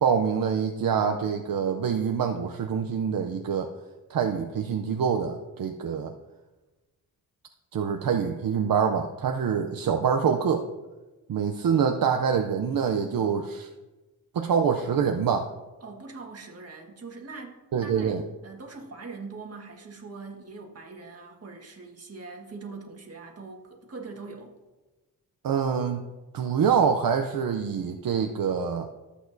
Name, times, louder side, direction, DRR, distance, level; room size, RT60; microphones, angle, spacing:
voice 1, 0.0-3.7 4.1-6.1 7.7-10.6 11.3-13.7 14.3-15.5 17.7-18.2 25.4-26.0 26.3-28.9, right 7 dB, 70° right, 5 dB, 0.6 m, -25 dB
voice 2, 15.8-24.6, right 4 dB, 40° right, 1 dB, 1.5 m, -42 dB
13.5 x 8.2 x 2.6 m, 1.2 s
wide cardioid pair, 130°, 36 cm